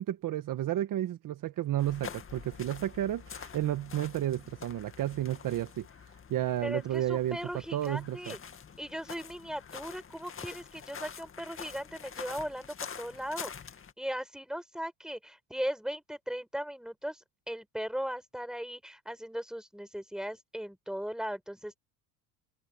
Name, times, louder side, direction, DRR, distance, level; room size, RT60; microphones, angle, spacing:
voice 1, 0.0-5.9 6.3-7.4 7.7-8.4, right 12 dB, 45° right, 1.5 m, -32 dB
sound 1, 1.8-13.9, left 7 dB, 30° left, 2.1 m, -46 dB
voice 2, 6.6-8.4 8.8-13.5 14.0-21.8, equal, ahead, 6.6 m, -38 dB
supercardioid pair, 95°, 44 cm